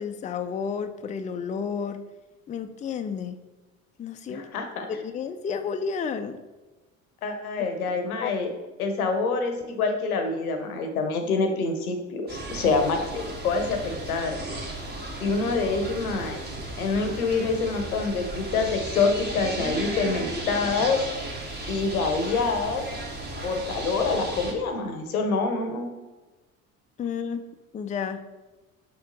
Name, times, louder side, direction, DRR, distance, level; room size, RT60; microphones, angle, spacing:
voice 1, 0.0-2.0 2.5-3.4 4.0-4.5 4.9-6.4 7.9-8.3 27.0-27.5 27.7-28.2, left 6 dB, 20° left, 8 dB, 0.4 m, -31 dB
voice 2, 4.3-4.9 7.2-8.5 8.8-14.4 15.2-16.4 16.8-21.0 21.7-22.8 23.4-25.9, left 4 dB, 85° left, 6 dB, 0.9 m, -26 dB
sound 1, 12.3-24.5, right 1 dB, 25° right, 1.5 m, -35 dB
5.9 x 4.2 x 3.8 m, 1.2 s
hypercardioid pair, 60°, 42 cm